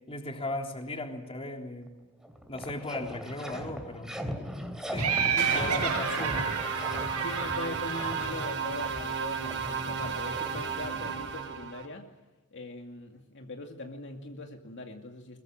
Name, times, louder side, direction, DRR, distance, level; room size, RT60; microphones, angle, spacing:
voice 1, 0.1-1.9 2.5-4.1 4.9-5.1 5.5-6.5, left 2 dB, 25° left, 3 dB, 3.5 m, -37 dB
sound 1, 1.9-2.0 2.2-11.6, equal, 5° right, 3.2 m, -40 dB
Laughter, 5.0-8.6, right 6 dB, 90° right, 5.5 m, -31 dB
voice 2, 5.4-5.8 6.2-6.4 7.2-12.1 12.5-15.4, left 2 dB, 55° left, 3 dB, 2.3 m, -40 dB
sound 2, 5.4-11.9, right 6 dB, 55° right, 6.3 m, -33 dB
22.5 x 22.0 x 9.0 m, 1.2 s
head